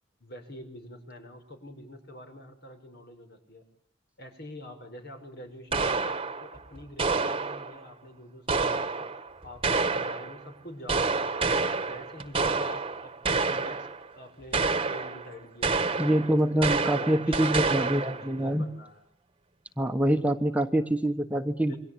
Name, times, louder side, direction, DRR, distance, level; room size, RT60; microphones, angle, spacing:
voice 1, 0.2-3.6 4.2-11.4 11.8-13.9 14.1-16.3 16.7-19.0 21.6-21.8, left 1 dB, 55° left, 6 dB, 6.1 m, -46 dB
sound 1, 5.7-7.8 8.5-10.4 10.9-14.1 14.5-15.3 15.6-18.3, right 4 dB, 30° right, 1.5 m, -28 dB
voice 2, 16.0-18.7 19.8-21.8, right 1 dB, 5° right, 5 dB, 1.3 m, -25 dB
28.5 x 24.0 x 8.8 m, 0.64 s
head